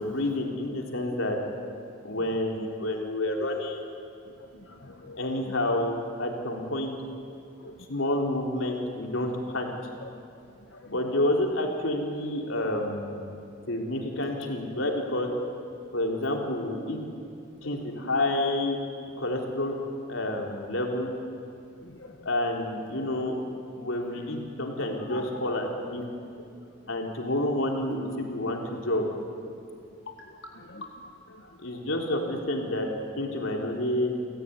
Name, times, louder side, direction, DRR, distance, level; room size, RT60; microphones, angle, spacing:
voice 1, 0.0-1.4 2.0-3.8 5.2-7.0 7.9-9.7 10.9-13.3 13.7-15.3 15.9-17.0 17.6-18.8 19.2-19.7 20.1-21.1 22.2-23.3 23.8-26.0 26.9-29.1 31.6-32.9 33.2-34.1, left 1 dB, 90° left, 1 dB, 3.9 m, -29 dB
voice 2, 4.4-5.6 7.6-7.8 9.4-9.5 10.0-10.1 10.7-11.0 17.6-18.1 21.8-22.3 24.1-24.3 25.1-25.2 27.3-27.4 30.1-31.8, left 2 dB, 70° left, 1 dB, 1.6 m, -46 dB
30.0 x 16.0 x 9.8 m, 2.5 s
head